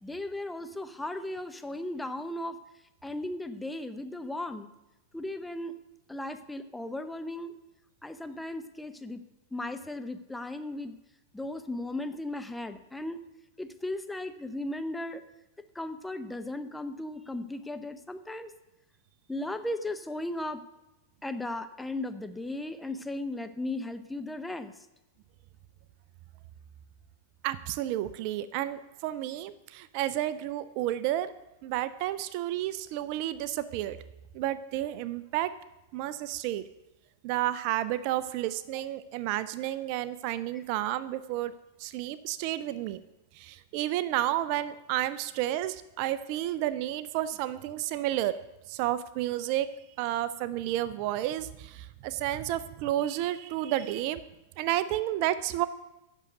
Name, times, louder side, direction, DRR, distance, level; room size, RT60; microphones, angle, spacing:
voice 1, 0.0-2.6 3.0-4.7 5.1-5.7 6.1-7.5 8.0-9.2 9.5-11.0 11.3-13.2 13.6-15.2 15.7-18.5 19.3-20.6 21.2-24.7 40.5-40.6, left 1 dB, 5° left, 9 dB, 0.7 m, -36 dB
voice 2, 27.4-31.3 31.6-34.0 34.3-35.5 35.9-36.6 37.2-41.5 41.8-43.0 43.4-48.4 48.7-49.7 50.0-54.2 54.6-55.7, right 13 dB, 50° right, 14 dB, 0.5 m, -31 dB
8.2 x 6.4 x 8.1 m, 0.96 s
hypercardioid pair, 100°, 0 cm